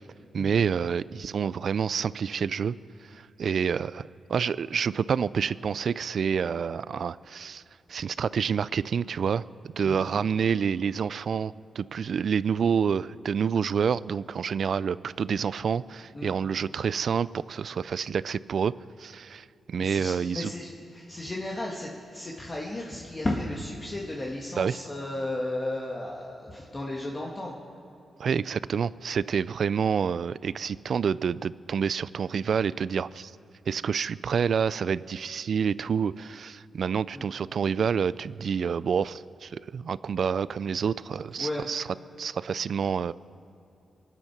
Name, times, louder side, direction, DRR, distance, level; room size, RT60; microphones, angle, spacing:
voice 1, 0.3-2.7 3.1-7.6 7.9-9.4 9.8-18.7 19.0-20.5 24.6-24.8 28.2-33.3 33.7-41.8 42.2-43.1, right 6 dB, 65° right, 18 dB, 0.4 m, -28 dB
voice 2, 19.8-27.5 37.1-37.2 41.4-41.7, left 1 dB, 25° left, -2 dB, 1.8 m, -34 dB
24.5 x 9.8 x 6.0 m, 2.8 s
cardioid pair, 95°, 0 cm